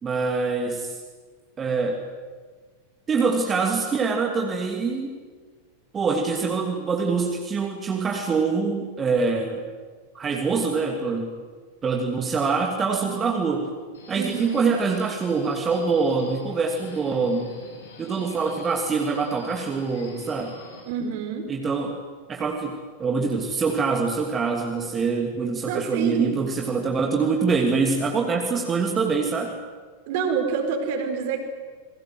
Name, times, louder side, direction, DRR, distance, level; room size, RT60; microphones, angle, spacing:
voice 1, 0.0-0.9 1.6-2.0 3.1-5.2 5.9-9.6 10.1-11.3 11.8-13.7 14.1-17.6 18.0-20.6 21.5-22.0 22.3-29.6, right 4 dB, 20° right, 2 dB, 2.8 m, -24 dB
Subway metro underground, 13.9-20.8, left 4 dB, 70° left, 6.3 m, -47 dB
voice 2, 14.1-14.6 20.8-21.5 25.6-26.4 30.1-31.4, right 6 dB, 50° right, 5 dB, 4.8 m, -27 dB
28.5 x 22.5 x 7.9 m, 1.5 s
figure-of-eight pair, 90°, 0 cm